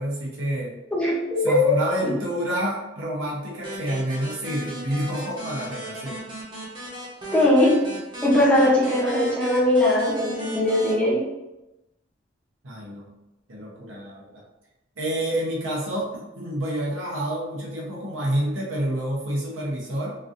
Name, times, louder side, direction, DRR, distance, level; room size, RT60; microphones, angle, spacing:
voice 1, 0.0-0.7 1.4-6.2 12.6-13.1 13.5-14.4 15.0-20.2, right 1 dB, 90° right, -4 dB, 0.9 m, -28 dB
voice 2, 0.9-1.8 7.3-7.9 8.2-11.2, left 1 dB, 5° left, -7 dB, 0.7 m, -20 dB
sound 1, 3.6-10.9, equal, 25° right, 0.8 m, -36 dB
3.1 x 2.6 x 2.5 m, 0.97 s
head